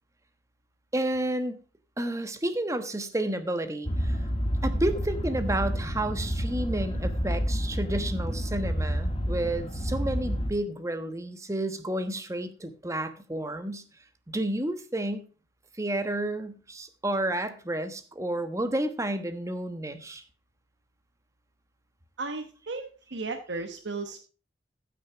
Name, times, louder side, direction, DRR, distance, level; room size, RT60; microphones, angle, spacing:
voice 1, 0.9-1.6 2.0-4.2 4.6-13.8 14.3-15.2 15.7-20.2, right 1 dB, 15° right, 9 dB, 1.1 m, -31 dB
sound 1, 3.9-10.5, equal, 30° left, 1.5 m, -29 dB
voice 2, 22.2-24.2, right 3 dB, 85° right, 5 dB, 1.0 m, -35 dB
14.5 x 6.4 x 4.6 m, 0.36 s
head